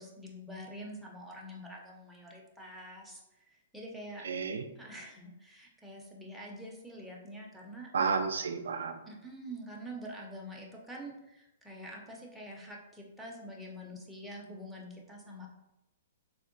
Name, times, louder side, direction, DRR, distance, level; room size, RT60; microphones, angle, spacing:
voice 1, 0.0-3.2 3.5-4.2 4.8-7.9 9.1-15.5, equal, ahead, -3 dB, 0.4 m, -46 dB
voice 2, 4.2-4.6 7.9-9.0, right 5 dB, 85° right, 7 dB, 0.3 m, -31 dB
3.5 x 2.1 x 2.5 m, 0.92 s
hypercardioid pair, 155°, 0 cm